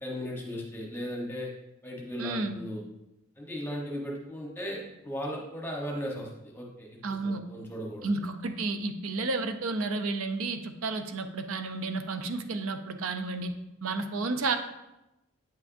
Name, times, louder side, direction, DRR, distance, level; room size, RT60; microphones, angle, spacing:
voice 1, 0.0-1.5 1.8-2.8 3.4-8.1, equal, 10° left, -2 dB, 1.0 m, -37 dB
voice 2, 2.2-2.6 7.0-7.4 8.0-13.5 13.8-14.6, right 3 dB, 85° right, 8 dB, 0.6 m, -31 dB
8.9 x 5.9 x 2.6 m, 0.92 s
head